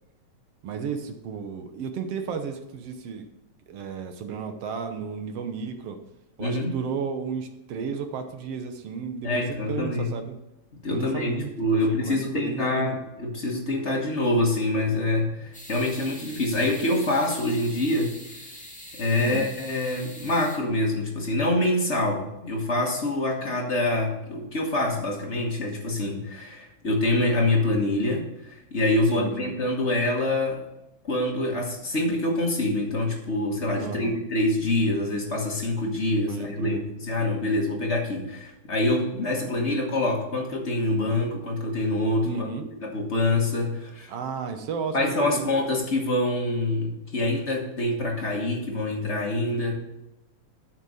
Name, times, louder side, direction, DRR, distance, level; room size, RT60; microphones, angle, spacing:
voice 1, 0.6-3.2 3.7-6.0 6.4-10.3 10.9-13.0 19.2-19.4 29.1-29.5 33.8-34.2 36.3-36.8 42.2-42.6 44.1-45.5, right 6 dB, 65° right, 7 dB, 1.8 m, -33 dB
voice 2, 6.4-6.7 9.2-10.1 10.8-18.1 18.9-30.6 31.0-42.5 42.8-44.1 44.9-49.8, left 1 dB, 50° left, 0 dB, 0.8 m, -25 dB
sound 1, 15.5-20.6, left 1 dB, 5° left, 1.2 m, -43 dB
9.4 x 6.8 x 4.9 m, 0.93 s
omnidirectional pair, 3.4 m